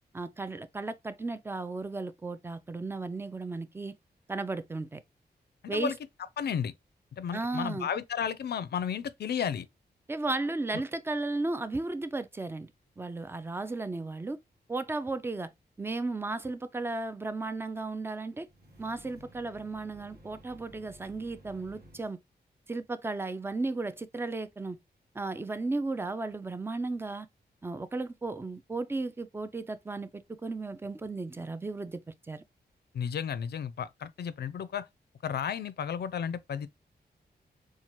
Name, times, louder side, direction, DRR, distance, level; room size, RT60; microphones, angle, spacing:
voice 1, 0.1-3.9 4.3-5.0 5.7-5.9 7.3-7.9 10.1-12.7 13.0-14.4 14.7-15.5 15.8-18.5 18.8-22.2 22.7-24.8 25.1-27.3 27.6-32.4, right 3 dB, 15° right, 0.4 m, -35 dB
voice 2, 6.4-6.7 7.2-9.7 32.9-34.9 35.2-36.7, left 7 dB, 75° left, 0.4 m, -33 dB
sound 1, 18.5-22.1, equal, 60° right, 1.2 m, -55 dB
4.3 x 2.3 x 2.9 m
wide cardioid pair, 110°, 17 cm